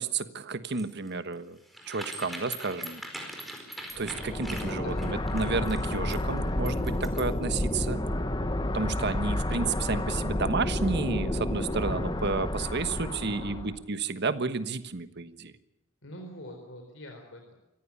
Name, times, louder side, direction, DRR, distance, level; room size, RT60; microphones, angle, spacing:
voice 1, 0.0-1.6 1.9-3.0 4.0-8.0 8.7-15.5, right 4 dB, 55° right, 11 dB, 1.3 m, -31 dB
sound 1, 0.7-7.4, equal, ahead, 4.7 m, -41 dB
sound 2, 4.0-13.8, left 1 dB, 20° left, 1.1 m, -30 dB
voice 2, 4.7-5.0 13.1-13.6 16.0-17.6, equal, 65° left, 3 dB, 4.1 m, -44 dB
26.0 x 15.0 x 8.5 m, 0.87 s
head